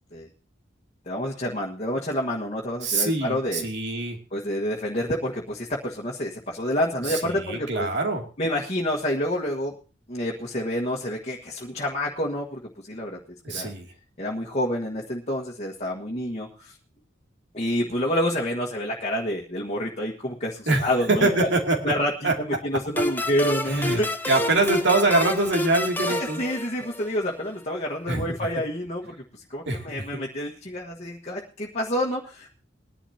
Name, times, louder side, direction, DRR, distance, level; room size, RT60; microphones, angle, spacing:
voice 1, 1.0-3.7 4.3-7.9 8.4-9.7 10.1-13.2 13.5-13.7 14.2-16.7 17.5-21.5 21.8-22.1 22.4-24.6 26.1-29.1 29.5-32.5, equal, 35° left, -1 dB, 1.6 m, -28 dB
voice 2, 2.8-4.2 7.1-8.2 13.4-13.9 20.7-21.9 22.2-22.4 23.7-24.0 24.3-26.4 28.1-28.3 29.7-30.2, right 2 dB, 65° right, 3 dB, 2.7 m, -24 dB
sound 1, 23.0-27.3, left 1 dB, 10° left, 1.0 m, -29 dB
21.0 x 11.0 x 2.9 m, 0.35 s
head